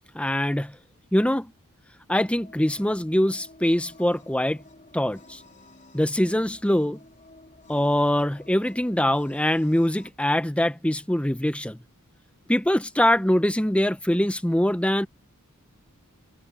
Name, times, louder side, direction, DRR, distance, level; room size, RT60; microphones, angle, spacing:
voice 1, 0.1-0.7 1.1-1.5 2.1-4.6 4.9-5.4 5.9-7.0 7.7-11.8 12.5-15.1, left 1 dB, 5° left, 0.8 m, -23 dB
sound 1, 2.1-10.1, left 2 dB, 35° left, 3.2 m, -52 dB
head